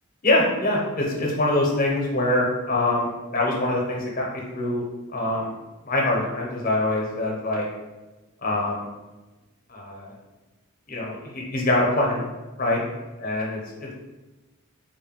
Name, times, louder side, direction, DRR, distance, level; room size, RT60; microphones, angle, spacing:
voice 1, 0.2-4.8 5.1-5.5 5.8-7.7 8.4-8.9 9.7-10.1 10.9-12.2 12.6-12.8 13.2-13.9, left 1 dB, 40° left, -3 dB, 0.7 m, -24 dB
3.7 x 2.2 x 4.0 m, 1.2 s
head